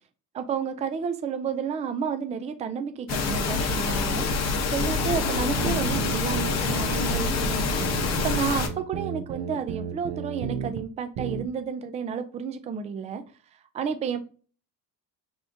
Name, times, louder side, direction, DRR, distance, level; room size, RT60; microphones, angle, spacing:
voice 1, 0.3-4.3 4.7-13.2 13.7-14.2, right 6 dB, 20° right, 9 dB, 0.3 m, -31 dB
sound 1, 3.1-8.7, left 4 dB, 45° left, 0.8 m, -26 dB
sound 2, 4.8-10.8 11.2-11.4, right 8 dB, 80° right, 0.7 m, -33 dB
5.6 x 3.5 x 2.6 m, 0.39 s
cardioid pair, 155°, 36 cm